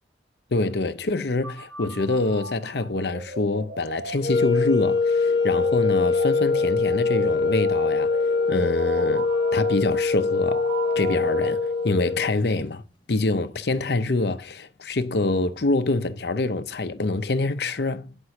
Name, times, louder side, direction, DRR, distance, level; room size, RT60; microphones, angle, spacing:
voice 1, 0.5-8.2 8.5-10.6 11.0-12.8 13.1-18.2, left 2 dB, 65° left, 0.7 m, -25 dB
sound 1, 1.4-12.2, right 3 dB, 85° right, 1.1 m, -37 dB
sound 2, 4.2-12.4, left 4 dB, 25° left, 1.0 m, -23 dB
8.1 x 5.4 x 5.8 m
head